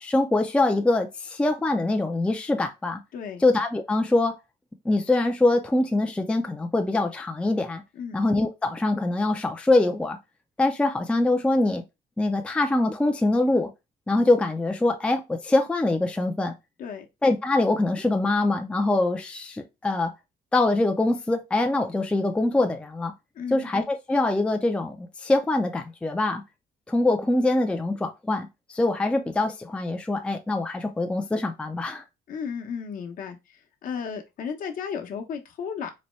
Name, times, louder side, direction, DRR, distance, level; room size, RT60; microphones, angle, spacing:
voice 1, 0.0-3.0 3.4-4.4 4.9-7.8 8.1-10.2 10.6-11.8 12.2-13.7 14.1-16.5 17.2-20.1 20.5-23.1 23.5-26.4 26.9-32.0, left 2 dB, 5° left, 0.4 m, -24 dB
voice 2, 3.1-3.4 7.9-8.2 16.8-17.1 23.3-23.7 32.3-35.9, left 6 dB, 55° left, 0.8 m, -34 dB
4.1 x 2.2 x 3.1 m
cardioid pair, 110°, 17 cm